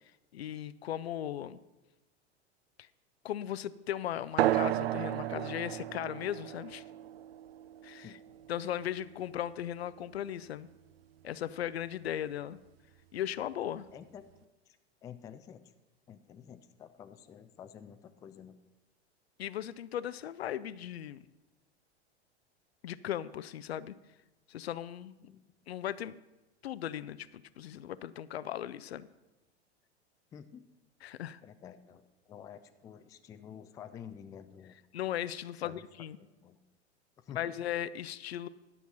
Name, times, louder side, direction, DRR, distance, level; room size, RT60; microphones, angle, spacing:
voice 1, 0.3-1.6 2.8-2.9 3.2-6.8 7.8-8.1 8.5-10.7 11.2-12.6 13.1-13.9 19.4-21.2 22.8-23.9 24.5-25.1 25.7-26.2 26.6-29.1 31.0-31.4 34.9-36.2 37.3-38.5, left 11 dB, 65° left, 17 dB, 0.5 m, -37 dB
sound 1, 4.4-9.4, right 14 dB, 60° right, 0.4 m, -34 dB
voice 2, 13.9-15.6 16.1-18.6 25.2-25.4 30.3-30.6 31.4-34.7 35.5-35.8 36.2-36.6 37.2-37.6, left 8 dB, 10° left, 10 dB, 0.3 m, -50 dB
11.0 x 6.8 x 5.9 m, 1.1 s
figure-of-eight pair, 90°, 34 cm